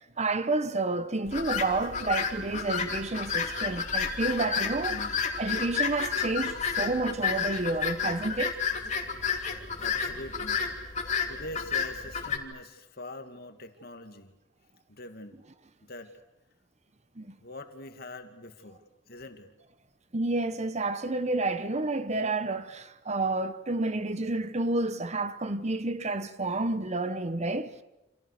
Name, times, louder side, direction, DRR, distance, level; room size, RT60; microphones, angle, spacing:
voice 1, 0.2-5.0 5.4-8.6 17.2-17.4 20.1-27.8, right 2 dB, 40° right, 1.1 m, -30 dB
sound 1, 1.3-12.4, left 6 dB, 40° left, 3.0 m, -31 dB
voice 2, 4.9-5.3 9.8-10.6 11.3-14.3 14.9-15.4 15.9-16.1 17.4-18.8 19.1-19.5, left 2 dB, 55° left, 2.4 m, -43 dB
29.5 x 27.0 x 6.8 m
head